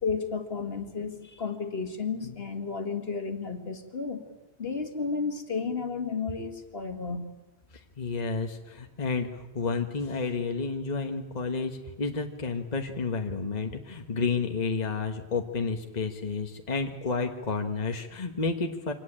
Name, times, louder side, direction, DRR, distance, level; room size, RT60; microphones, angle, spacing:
voice 1, 0.0-4.2 4.6-7.3, left 5 dB, 60° left, 7 dB, 2.1 m, -32 dB
voice 2, 8.0-18.9, left 4 dB, 40° left, 5 dB, 1.4 m, -31 dB
25.0 x 18.0 x 8.8 m, 1.1 s
omnidirectional pair, 1.1 m